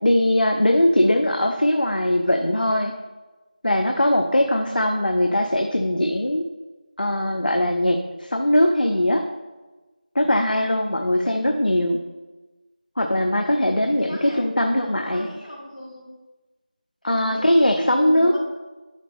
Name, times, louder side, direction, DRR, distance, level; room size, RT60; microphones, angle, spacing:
voice 1, 0.0-2.9 3.6-6.4 7.0-9.2 10.1-12.0 13.0-15.3 17.0-18.3, left 1 dB, 70° left, 4 dB, 0.8 m, -20 dB
voice 2, 13.8-14.5 14.8-16.1 17.0-18.4, equal, 90° left, -7 dB, 2.8 m, -37 dB
11.0 x 4.1 x 4.1 m, 1.2 s
figure-of-eight pair, 175°, 5 cm